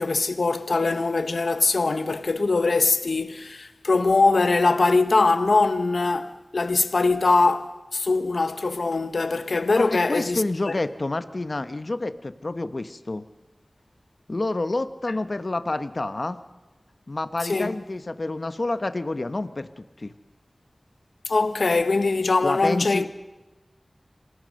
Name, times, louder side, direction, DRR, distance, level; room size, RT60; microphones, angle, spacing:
voice 1, 0.0-10.7 17.4-17.8 21.2-23.0, left 3 dB, 80° left, 1.0 m, -22 dB
voice 2, 9.7-13.2 14.3-16.4 17.1-20.1 22.4-23.1, left 2 dB, 50° left, 1.0 m, -28 dB
27.0 x 17.5 x 6.4 m
wide cardioid pair, 60°, 0 cm